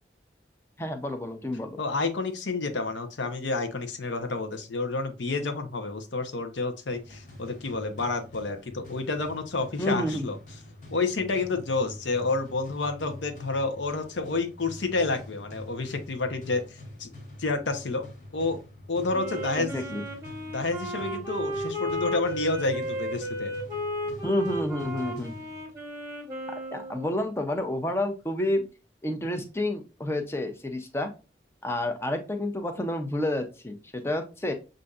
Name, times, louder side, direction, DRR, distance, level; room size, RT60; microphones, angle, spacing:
voice 1, 0.8-1.8 9.8-10.3 19.6-20.0 24.2-25.3 26.7-28.6 29.0-31.1 31.6-34.5, left 1 dB, 15° left, 6 dB, 0.5 m, -29 dB
voice 2, 1.8-10.4 10.9-16.6 17.0-17.1 17.4-18.1 18.3-18.6 18.9-19.8 20.5-23.5, left 3 dB, 85° left, 7 dB, 0.7 m, -29 dB
sound 1, 6.9-25.9, left 1 dB, 45° left, 1.3 m, -46 dB
Wind instrument woodwind instrument, 19.1-27.2, equal, 15° right, 1.0 m, -34 dB
6.5 x 2.6 x 2.3 m, 0.31 s
head